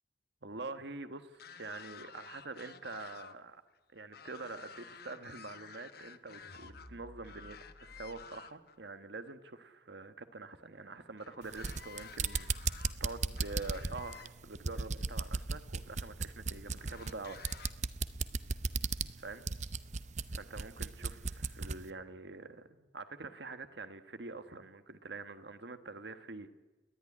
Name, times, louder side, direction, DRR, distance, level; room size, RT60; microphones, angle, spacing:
voice 1, 0.4-3.6 3.9-17.4 19.2-19.4 20.3-26.5, right 3 dB, 65° right, 10 dB, 1.3 m, -46 dB
sound 1, 1.3-3.4 3.7-6.9 7.2-8.8 11.2-14.3 15.2-15.3 16.8-17.7, left 7 dB, 55° left, 1.1 m, -52 dB
sound 2, 6.4-8.2, equal, 90° left, 4.7 m, -55 dB
sound 3, 11.4-21.8, right 4 dB, 40° right, 0.7 m, -36 dB
29.5 x 11.5 x 9.9 m, 1.2 s
head